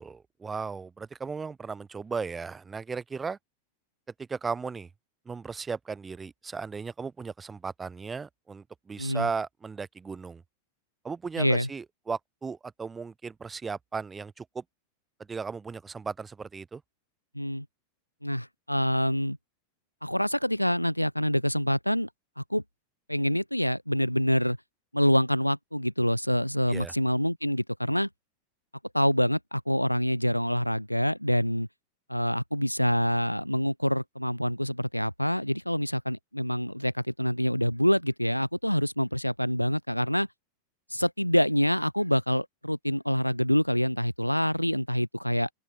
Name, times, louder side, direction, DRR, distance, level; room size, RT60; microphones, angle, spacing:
voice 1, 0.0-3.4 4.2-4.9 5.2-10.4 11.0-14.6 15.3-16.8 26.7-26.9, right 5 dB, 15° right, 2.8 m, -36 dB
voice 2, 9.0-9.3 11.4-11.7 17.3-17.7 18.2-19.4 20.0-22.1 22.4-22.6 23.1-24.6 24.9-28.1 28.9-31.7 32.1-40.3 40.9-45.5, equal, 90° left, 0.5 m, -26 dB
open air
figure-of-eight pair, 90°, 0 cm